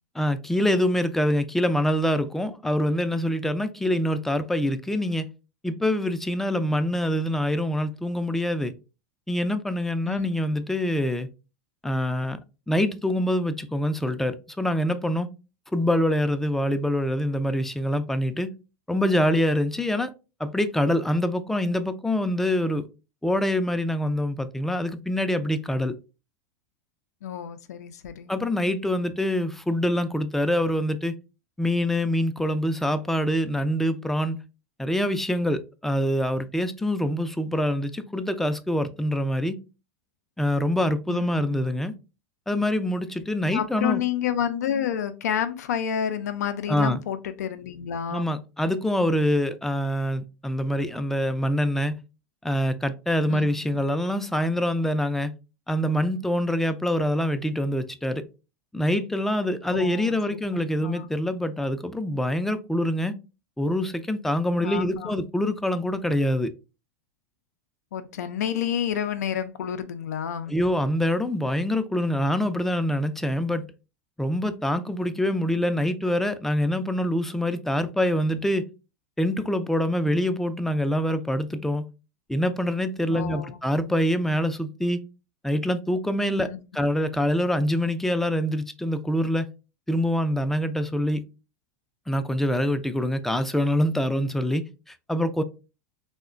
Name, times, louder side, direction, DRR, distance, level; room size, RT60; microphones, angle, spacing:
voice 1, 0.2-5.3 5.6-8.7 9.3-11.3 11.8-12.4 12.7-15.3 15.7-18.5 18.9-20.1 20.4-22.9 23.2-25.9 28.3-31.2 31.6-34.4 34.8-39.6 40.4-41.9 42.5-44.0 46.7-47.0 48.1-52.0 52.4-55.3 55.7-58.2 58.7-63.1 63.6-66.5 70.5-73.7 74.2-78.7 79.2-81.9 82.3-85.0 85.4-89.5 89.9-91.2 92.1-95.4, left 1 dB, 5° left, 0.3 m, -25 dB
voice 2, 27.2-28.3 41.1-41.6 43.5-48.3 53.3-53.9 59.7-60.4 60.8-61.1 64.6-65.2 67.9-70.5 83.1-83.6 86.4-86.6, left 9 dB, 85° left, 0.4 m, -30 dB
3.6 x 2.1 x 2.4 m
hypercardioid pair, 100°, 9 cm